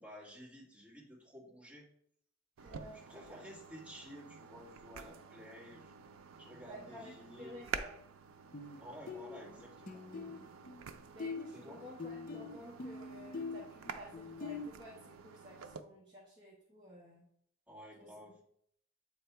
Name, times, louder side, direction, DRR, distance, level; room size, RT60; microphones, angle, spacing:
voice 1, 0.0-1.9 2.6-6.0 6.4-7.6 8.8-10.0 11.5-11.9 17.7-18.4, equal, 5° right, -6 dB, 1.6 m, -52 dB
voice 2, 2.6-3.1 6.7-8.0 11.1-17.3 18.0-18.1, equal, 20° right, -5 dB, 0.9 m, -53 dB
sound 1, 2.6-15.8, right 5 dB, 90° right, 0.4 m, -49 dB
sound 2, 7.0-7.2 8.5-8.8 9.1-10.9 11.2-14.7, left 4 dB, 40° left, 0.5 m, -44 dB
7.9 x 2.7 x 4.4 m, 0.69 s
head